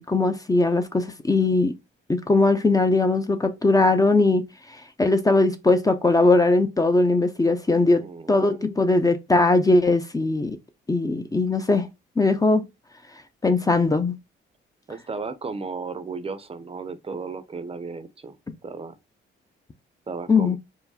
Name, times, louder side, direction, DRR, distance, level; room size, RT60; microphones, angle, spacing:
voice 1, 0.0-1.7 2.1-4.4 5.0-8.0 8.3-10.6 10.9-11.9 12.2-12.6 13.4-14.1 20.3-20.6, left 2 dB, 20° left, 0.6 m, -20 dB
voice 2, 7.8-8.6 14.9-18.4 18.6-18.9 20.1-20.6, right 4 dB, 30° right, 0.7 m, -35 dB
4.7 x 2.1 x 4.1 m
cardioid pair, 90°, 20 cm